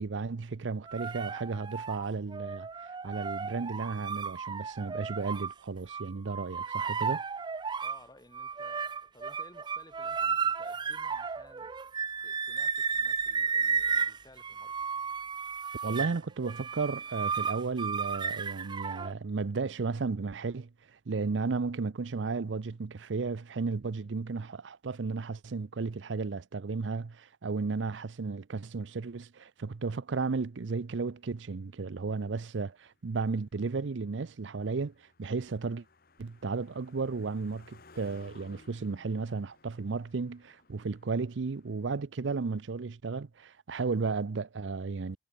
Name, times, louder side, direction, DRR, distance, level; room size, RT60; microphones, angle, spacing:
voice 1, 0.0-2.7 3.0-7.2 15.8-35.8 36.2-45.2, right 4 dB, 85° right, 0.6 m, -34 dB
sound 1, 0.9-5.5 5.9-8.0 8.3-19.1, right 6 dB, 25° right, 0.4 m, -33 dB
voice 2, 7.8-11.7 12.2-14.7, left 1 dB, 20° left, 4.7 m, -57 dB
Car passing by, 30.9-42.0, left 3 dB, 55° left, 1.7 m, -61 dB
head